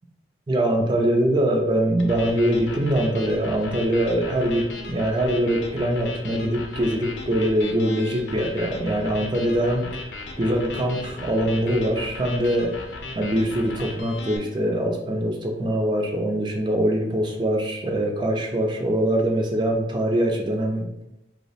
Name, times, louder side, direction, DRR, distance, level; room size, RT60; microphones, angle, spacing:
voice 1, 0.5-9.9 10.4-12.8 13.1-20.9, right 1 dB, 25° right, 1 dB, 0.5 m, -23 dB
sound 1, 2.0-14.4, left 2 dB, 85° left, 0.5 m, -37 dB
2.8 x 2.0 x 4.1 m, 0.89 s
head